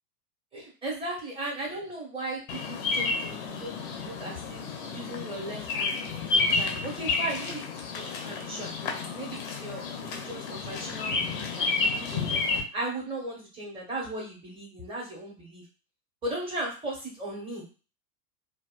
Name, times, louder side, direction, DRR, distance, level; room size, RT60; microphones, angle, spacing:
voice 1, 0.5-3.7 4.0-8.9 9.1-15.6 16.2-17.6, right 1 dB, 10° right, -3 dB, 0.9 m, -37 dB
Bird vocalization bird call bird song, 2.5-12.6, left 4 dB, 35° left, 0.5 m, -31 dB
2.7 x 2.2 x 2.3 m, 0.34 s
figure-of-eight pair, 100°, 49 cm